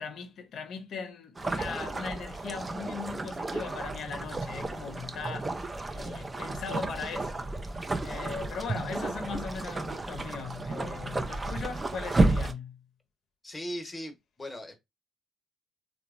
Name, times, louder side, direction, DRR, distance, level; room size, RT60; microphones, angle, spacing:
voice 1, 0.0-12.8, left 6 dB, 65° left, 0.5 m, -39 dB
sound 1, 1.4-12.5, right 2 dB, 25° right, 0.4 m, -32 dB
voice 2, 13.4-14.8, equal, 20° left, 0.8 m, -38 dB
2.9 x 2.1 x 2.4 m
cardioid pair, 90°, 0 cm